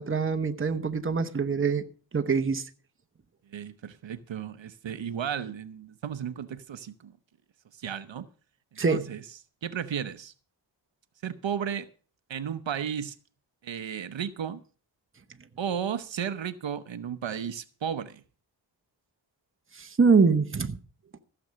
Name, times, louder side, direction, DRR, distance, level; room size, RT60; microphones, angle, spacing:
voice 1, 0.0-1.8 2.1-2.6 8.8-9.1 19.8-20.8, right 5 dB, 30° right, 0.9 m, -24 dB
voice 2, 3.5-7.1 7.8-8.3 8.9-9.2 9.6-10.3 11.2-11.9 12.3-13.2 13.6-14.6 15.6-18.2, right 8 dB, 75° right, 0.9 m, -34 dB
15.5 x 7.0 x 6.2 m
wide cardioid pair, 100°, 45 cm